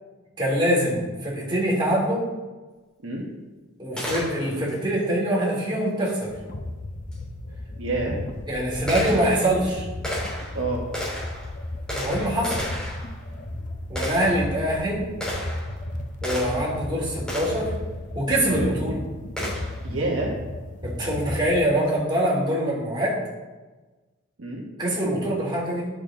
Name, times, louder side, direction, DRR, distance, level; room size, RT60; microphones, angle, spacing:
voice 1, 0.4-2.2 3.8-6.3 8.5-9.9 11.9-12.6 13.9-15.0 16.2-17.7 18.1-19.0 20.8-23.2 24.8-25.9, right 1 dB, 20° right, -6 dB, 3.1 m, -24 dB
Gunshot gunfire, 4.0-4.8 7.1-7.2 7.9-16.8 17.3-17.7 19.4-19.9, equal, 5° left, 3.1 m, -33 dB
sound 1, 6.3-21.9, left 1 dB, 40° left, 0.7 m, -35 dB
voice 2, 7.8-8.2 10.5-10.8 15.0-15.2 18.5-18.8 19.8-20.3 24.4-24.7, right 2 dB, 70° right, -2 dB, 1.3 m, -28 dB
11.0 x 6.2 x 3.8 m, 1.2 s
head